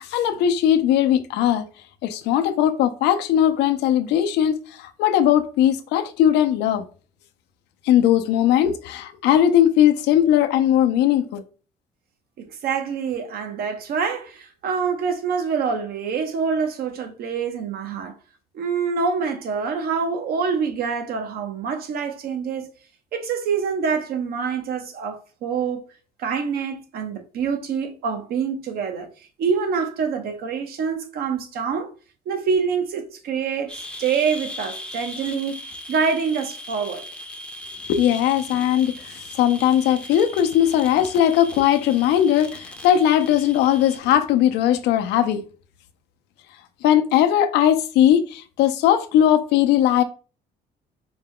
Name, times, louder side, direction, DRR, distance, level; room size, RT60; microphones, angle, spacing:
voice 1, 0.0-1.7 2.0-6.8 7.9-11.4 37.9-45.4 46.8-50.0, left 10 dB, 85° left, 0.6 m, -19 dB
voice 2, 12.4-18.1 18.5-22.7 23.1-25.8 26.2-29.1 29.4-31.9 32.3-37.1, right 6 dB, 65° right, 0.8 m, -26 dB
sound 1, 33.7-44.0, left 1 dB, 5° left, 0.6 m, -38 dB
4.6 x 2.2 x 3.7 m
cardioid pair, 110°, 17 cm